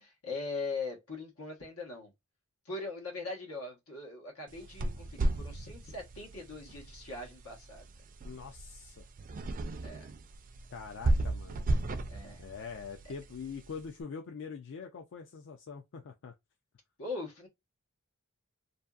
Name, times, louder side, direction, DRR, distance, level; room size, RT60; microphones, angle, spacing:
voice 1, 0.0-2.1 2.6-7.9 9.8-10.1 12.1-12.5 17.0-17.5, left 3 dB, 85° left, 1.2 m, -41 dB
sound 1, 4.5-13.9, right 1 dB, 40° right, 0.3 m, -35 dB
voice 2, 8.2-9.1 10.7-11.6 12.4-16.3, left 5 dB, 60° left, 0.4 m, -44 dB
2.6 x 2.4 x 2.3 m
head